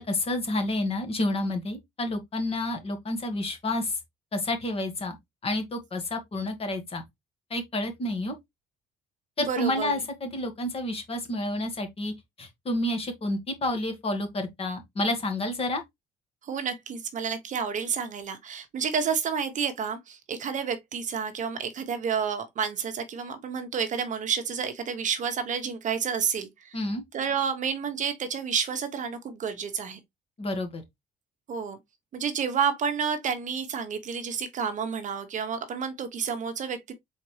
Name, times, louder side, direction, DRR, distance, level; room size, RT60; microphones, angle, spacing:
voice 1, 0.0-4.0 4.3-5.2 5.4-7.0 7.5-8.3 9.4-15.8 26.7-27.0 30.4-30.8, left 1 dB, 35° left, 1.6 m, -29 dB
voice 2, 9.5-9.9 16.4-26.8 27.1-30.0 31.5-31.8 32.1-36.9, right 6 dB, 50° right, 1.0 m, -30 dB
4.2 x 4.0 x 3.2 m
cardioid pair, 110°, 17 cm